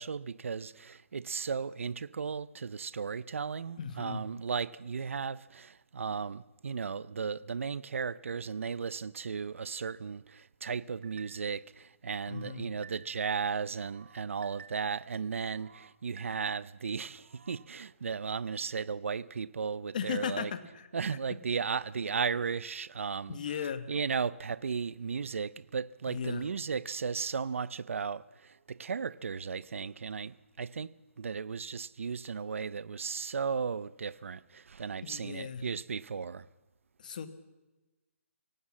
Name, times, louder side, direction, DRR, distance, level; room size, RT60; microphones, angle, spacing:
voice 1, 0.0-20.5 20.9-36.4, right 5 dB, 65° right, 0.7 m, -35 dB
voice 2, 3.8-4.2 12.3-12.7 19.9-21.2 23.3-23.9 26.1-26.5 35.0-35.6 37.0-37.3, left 7 dB, 35° left, 1.4 m, -37 dB
sound 1, 11.0-11.6 12.1-13.3 13.7-15.0 15.4-16.8 17.2-17.7, right 6 dB, 50° right, 1.2 m, -55 dB
23.5 x 18.0 x 7.4 m
hypercardioid pair, 175°, 8 cm